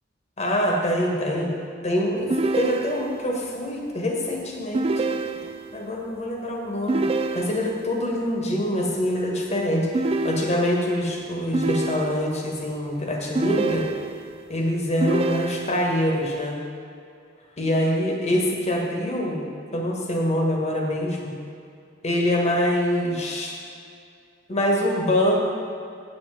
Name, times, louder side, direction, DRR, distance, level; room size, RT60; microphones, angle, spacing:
voice 1, 0.4-1.5 1.8-5.0 5.7-7.1 7.3-9.9 10.2-13.9 14.5-16.6 17.6-19.4 19.7-21.3 22.0-23.5 24.5-25.4, left 1 dB, 35° left, 0 dB, 1.3 m, -24 dB
sound 1, 2.3-3.3 4.7-5.8 6.9-7.9 9.9-11.0 11.5-12.5 13.4-14.4 15.0-16.0, right 3 dB, 30° right, 0.4 m, -27 dB
8.6 x 7.6 x 4.8 m, 2.5 s
head